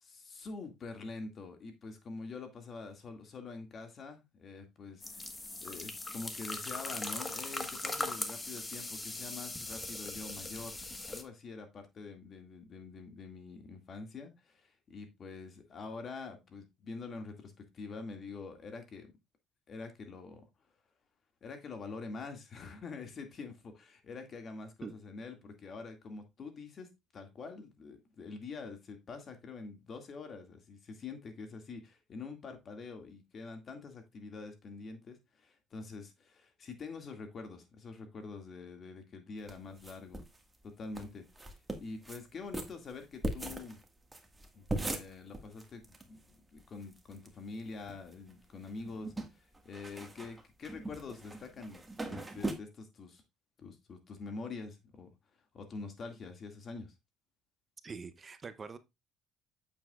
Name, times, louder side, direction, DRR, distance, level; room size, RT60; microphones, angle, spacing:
voice 1, 0.0-5.3 5.6-19.1 19.7-20.4 21.4-26.9 27.1-40.2 40.8-41.2 41.7-43.8 44.5-53.2 53.6-55.1 55.5-56.9, left 4 dB, 45° left, 2.1 m, -46 dB
sound 1, 5.0-11.2, left 2 dB, 20° left, 1.4 m, -40 dB
sound 2, 39.5-40.4 40.6-40.7 40.9-41.1 41.4-42.2 42.5-46.0 46.3-46.4 46.6-47.3 47.7-48.3 48.6-52.5, right 2 dB, 15° right, 1.7 m, -40 dB
voice 2, 57.8-58.8, right 5 dB, 35° right, 0.7 m, -44 dB
8.2 x 7.2 x 2.4 m
supercardioid pair, 80°, 0 cm